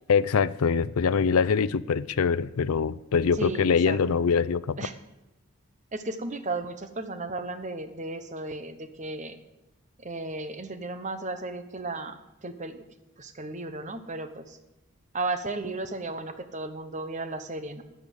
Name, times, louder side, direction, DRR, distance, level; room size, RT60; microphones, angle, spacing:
voice 1, 0.1-4.8, left 6 dB, 80° left, 0.5 m, -24 dB
voice 2, 3.4-4.0 4.8-4.9 5.9-9.4 10.0-12.8 13.2-14.6 15.1-17.8, right 2 dB, 35° right, 1.1 m, -34 dB
11.5 x 8.8 x 7.9 m
head